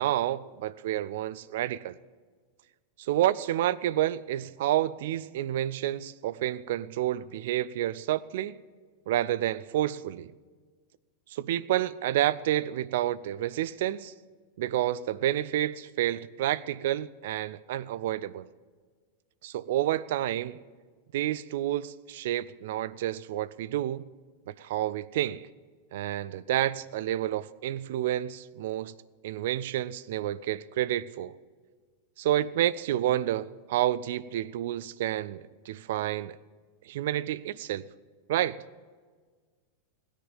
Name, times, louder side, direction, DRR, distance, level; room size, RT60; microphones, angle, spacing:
voice 1, 0.0-2.0 3.0-8.5 9.1-10.3 11.3-14.1 14.6-18.5 19.4-20.6 21.1-24.1 24.5-25.5 25.9-28.9 29.2-31.3 32.2-36.4 36.9-37.8 38.3-38.6, right 13 dB, 55° right, 0.4 m, -29 dB
17.5 x 10.5 x 5.4 m
figure-of-eight pair, 90°, 0 cm